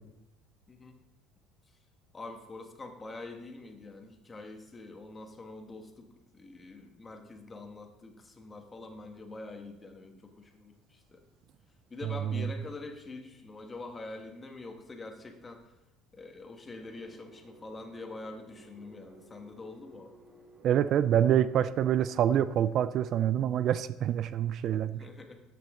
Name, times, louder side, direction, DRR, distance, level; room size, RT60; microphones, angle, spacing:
voice 1, 0.7-1.0 2.1-11.2 11.9-15.7 16.1-20.1 25.0-25.4, left 2 dB, 25° left, 4 dB, 1.5 m, -45 dB
sound 1, 16.8-22.1, right 2 dB, 35° right, 1.8 m, -57 dB
voice 2, 20.6-25.0, right 10 dB, 55° right, 14 dB, 0.3 m, -26 dB
13.0 x 5.9 x 3.8 m, 0.95 s
supercardioid pair, 95°, 0 cm